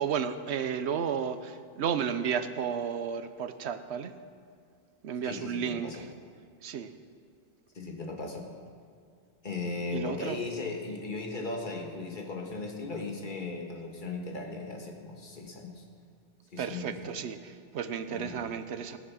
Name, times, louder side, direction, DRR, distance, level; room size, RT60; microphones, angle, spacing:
voice 1, 0.0-4.2 5.0-6.1 6.6-6.9 9.9-10.4 16.6-19.0, right 7 dB, 85° right, 11 dB, 1.0 m, -33 dB
voice 2, 5.2-6.1 7.8-8.4 9.4-15.8 16.5-17.1 18.1-18.5, left 3 dB, 50° left, 1 dB, 1.8 m, -37 dB
19.0 x 7.5 x 6.2 m, 2.2 s
omnidirectional pair, 1.1 m